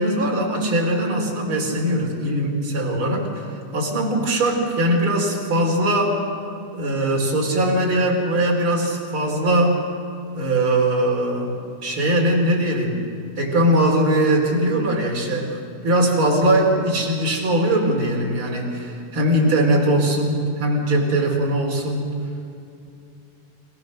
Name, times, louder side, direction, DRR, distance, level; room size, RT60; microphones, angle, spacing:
voice 1, 0.0-3.5 3.7-6.2 6.7-9.9 10.3-11.6 11.8-13.1 13.4-22.2, right 1 dB, 30° right, -1 dB, 4.7 m, -21 dB
28.0 x 19.0 x 6.6 m, 2.6 s
omnidirectional pair, 4.9 m